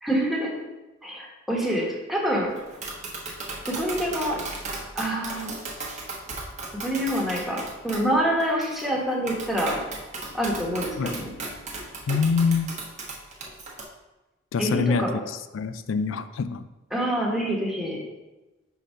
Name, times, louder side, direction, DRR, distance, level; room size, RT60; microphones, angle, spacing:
voice 1, 0.0-0.5 1.0-2.5 3.7-4.4 4.9-5.6 6.7-9.8 10.3-11.3 14.6-15.2 16.9-18.0, equal, ahead, -3 dB, 1.2 m, -26 dB
Tap, 2.6-13.8, right 2 dB, 40° right, 1.0 m, -36 dB
voice 2, 12.1-12.7 14.5-15.1 15.5-16.6, left 5 dB, 70° left, 12 dB, 0.4 m, -24 dB
5.0 x 4.0 x 5.5 m, 1.1 s
head